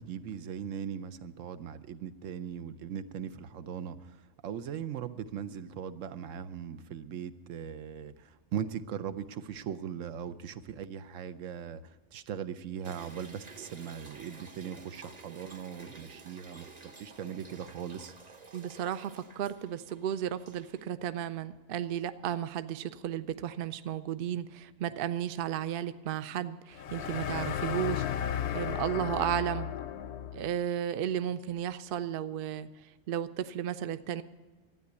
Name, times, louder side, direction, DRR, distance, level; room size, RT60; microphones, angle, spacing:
voice 1, 0.0-4.2 4.4-18.1, right 8 dB, 80° right, 12 dB, 1.0 m, -39 dB
sound 1, 12.8-20.8, right 3 dB, 35° right, 1.0 m, -52 dB
voice 2, 18.5-29.7 30.3-32.7 33.1-34.2, right 10 dB, 60° right, 13 dB, 0.6 m, -34 dB
sound 2, 26.7-30.5, left 9 dB, 65° left, 0.8 m, -34 dB
12.5 x 9.5 x 8.1 m, 1.2 s
omnidirectional pair, 1.3 m